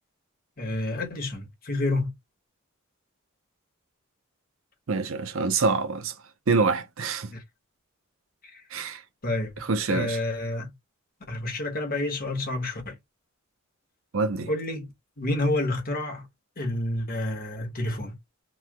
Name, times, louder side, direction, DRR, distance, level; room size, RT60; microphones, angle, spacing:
voice 1, 0.6-2.1 7.3-7.4 8.5-8.6 9.2-9.5 9.9-10.7 11.3-12.9 14.5-14.9 15.2-16.3 16.6-18.1, left 2 dB, 45° left, 1.1 m, -29 dB
voice 2, 4.9-6.1 6.5-7.3 8.7-9.0 9.6-10.2 14.1-14.5, right 4 dB, 70° right, 0.6 m, -26 dB
3.0 x 2.3 x 3.5 m
head